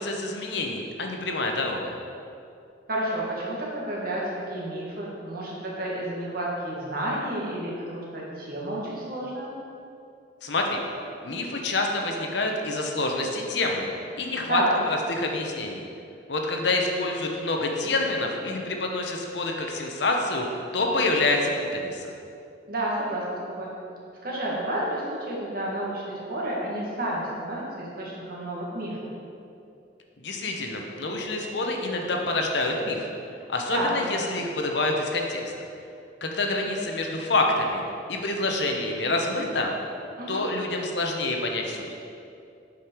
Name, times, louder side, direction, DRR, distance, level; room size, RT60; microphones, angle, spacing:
voice 1, 0.0-1.9 10.4-10.8 11.2-13.9 14.2-14.6 15.1-15.9 16.3-20.5 20.7-22.1 30.2-33.1 33.5-35.4 36.2-37.8 38.1-39.7 40.3-41.9, left 2 dB, 70° left, 2 dB, 0.9 m, -27 dB
voice 2, 2.9-9.5 14.5-14.8 22.7-23.7 24.2-29.0 33.7-33.9 40.2-40.4, right 1 dB, 55° right, -4 dB, 1.8 m, -30 dB
8.7 x 5.2 x 4.5 m, 2.6 s
head